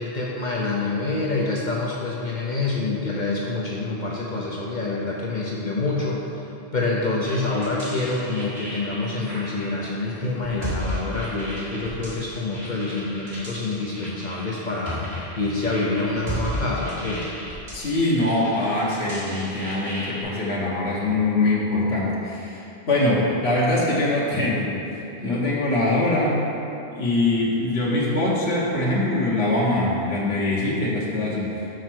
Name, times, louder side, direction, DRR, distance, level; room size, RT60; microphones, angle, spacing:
voice 1, 0.0-6.2 6.7-15.0 15.4-17.3, left 3 dB, 50° left, -4 dB, 0.8 m, -26 dB
sound 1, 7.2-20.2, equal, 70° right, 2.1 m, -35 dB
voice 2, 17.7-26.4 26.9-31.7, left 2 dB, 85° left, -6 dB, 1.4 m, -23 dB
6.6 x 4.5 x 6.0 m, 2.8 s
omnidirectional pair, 1.1 m